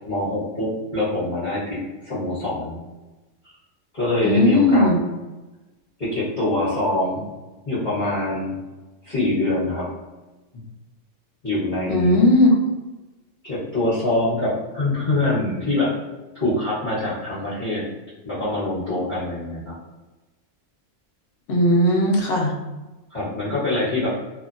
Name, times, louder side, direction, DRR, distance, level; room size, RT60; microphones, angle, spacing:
voice 1, 0.0-2.8 3.9-4.9 6.0-7.3 7.6-8.6 9.0-9.9 11.4-12.2 13.4-15.9 16.3-17.8 18.2-19.7 23.1-24.2, left 2 dB, 40° left, -13 dB, 1.2 m, -24 dB
voice 2, 4.2-5.0 11.9-12.5 21.5-22.5, left 1 dB, 75° left, 0 dB, 0.9 m, -17 dB
2.8 x 2.1 x 2.5 m, 1.1 s
omnidirectional pair, 1.3 m